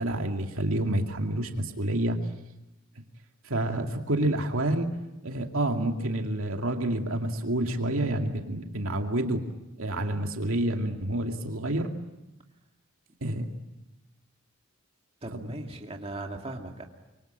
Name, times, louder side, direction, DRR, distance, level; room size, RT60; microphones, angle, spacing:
voice 1, 0.0-2.2 3.4-4.9 5.2-9.4 9.8-11.9 13.2-13.5 15.3-15.5, right 1 dB, 70° right, 3 dB, 2.4 m, -28 dB
voice 2, 15.2-16.9, right 2 dB, 25° right, 2 dB, 2.4 m, -38 dB
26.0 x 24.0 x 9.0 m, 0.99 s
head